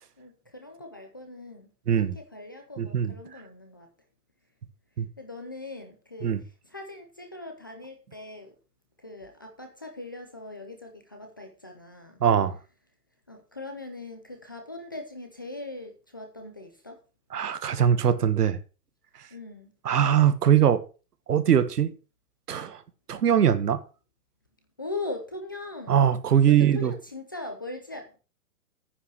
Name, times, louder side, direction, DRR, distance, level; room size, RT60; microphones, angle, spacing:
voice 1, 0.2-1.7 2.0-3.9 5.2-8.5 9.0-12.2 13.3-17.0 19.3-19.7 24.8-26.0 26.5-28.1, left 2 dB, 15° left, 0.5 m, -40 dB
voice 2, 1.9-2.2 2.8-3.1 5.0-5.1 6.2-6.4 12.2-12.6 17.3-18.6 19.8-20.8 21.3-21.9 22.5-22.8 23.1-23.8 25.9-26.9, right 9 dB, 80° right, 1.6 m, -21 dB
9.7 x 5.3 x 7.9 m
hypercardioid pair, 165°, 46 cm